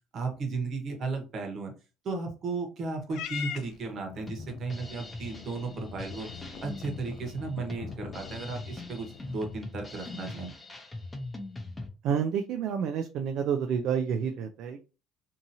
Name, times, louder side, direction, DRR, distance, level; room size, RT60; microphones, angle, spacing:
voice 1, 0.1-1.7 2.0-6.3 6.6-10.5, right 3 dB, 45° right, 3 dB, 0.9 m, -35 dB
Purr / Meow, 3.1-9.6, left 7 dB, 65° left, 0.5 m, -43 dB
Drum kit, 4.3-11.9, left 2 dB, 15° left, 0.6 m, -41 dB
voice 2, 12.0-14.8, right 7 dB, 60° right, 6 dB, 0.3 m, -29 dB
2.7 x 2.6 x 2.6 m, 0.32 s
cardioid pair, 130°, 0 cm